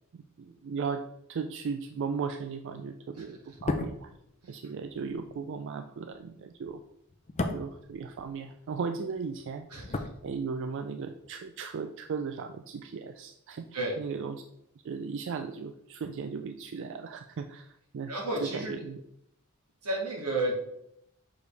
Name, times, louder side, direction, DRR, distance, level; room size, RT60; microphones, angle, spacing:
voice 1, 0.1-4.1 4.5-6.8 7.4-13.7 14.0-14.4 14.8-19.0, right 5 dB, 55° right, 7 dB, 0.3 m, -37 dB
sound 1, 3.5-8.8 9.1-10.9 11.2-11.3, left 2 dB, 30° left, 0.5 m, -37 dB
voice 2, 9.7-10.0 13.7-14.0 18.1-18.8 19.8-20.5, right 2 dB, 85° right, -1 dB, 2.0 m, -32 dB
6.3 x 5.0 x 3.3 m, 0.77 s
head